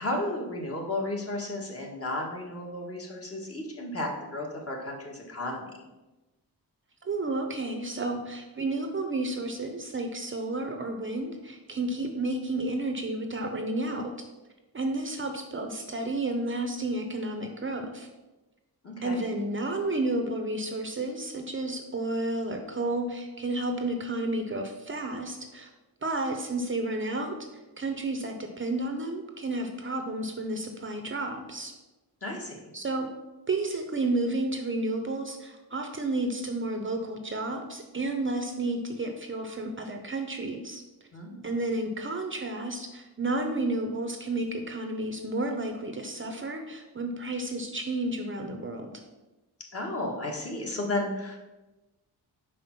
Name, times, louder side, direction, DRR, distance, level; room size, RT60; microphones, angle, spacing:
voice 1, 0.0-5.7 18.8-19.2 32.2-32.6 41.1-41.4 49.7-51.4, left 1 dB, 35° left, -1 dB, 1.6 m, -33 dB
voice 2, 7.0-14.1 14.7-18.1 19.0-25.7 26.0-31.7 32.7-33.1 33.5-40.8 41.4-48.9, right 2 dB, 30° right, 5 dB, 0.7 m, -31 dB
5.3 x 4.9 x 5.8 m, 1.1 s
wide cardioid pair, 120°, 39 cm